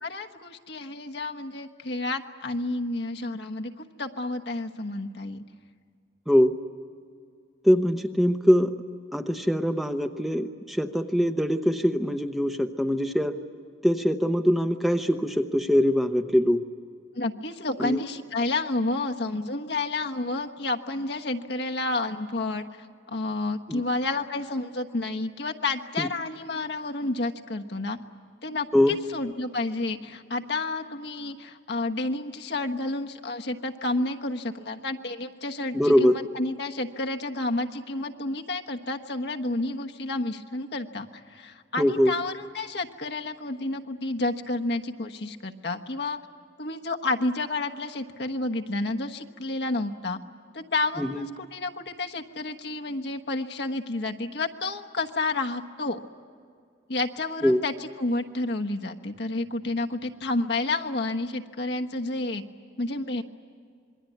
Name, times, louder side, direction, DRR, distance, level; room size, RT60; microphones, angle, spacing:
voice 1, 0.0-5.4 17.1-28.0 28.4-36.1 36.3-46.2 46.6-50.2 50.5-56.0 56.9-62.4 62.8-63.2, left 2 dB, 65° left, 4 dB, 1.2 m, -30 dB
voice 2, 7.6-8.7 9.1-13.4 13.8-16.6 17.8-18.0 23.7-23.8 26.0-26.1 28.7-29.0 35.7-36.2 41.8-42.1 51.0-51.3 57.4-57.6, equal, ahead, 6 dB, 0.8 m, -23 dB
27.0 x 22.0 x 9.4 m, 2.2 s
head